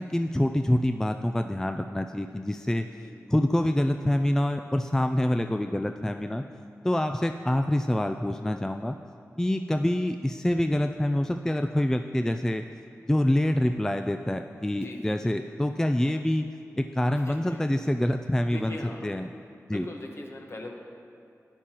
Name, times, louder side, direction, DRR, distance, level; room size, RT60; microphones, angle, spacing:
voice 1, 0.0-2.9 3.3-6.4 6.8-9.0 9.4-12.6 13.1-16.4 16.8-18.8 19.0-19.3 19.7-19.9, left 1 dB, 10° left, 6 dB, 0.3 m, -26 dB
voice 2, 3.0-3.3 14.7-15.2 17.2-17.6 18.5-19.1 19.7-20.7, left 1 dB, 50° left, 1 dB, 1.2 m, -40 dB
13.0 x 9.7 x 3.0 m, 2.4 s
wide cardioid pair, 60°, 6 cm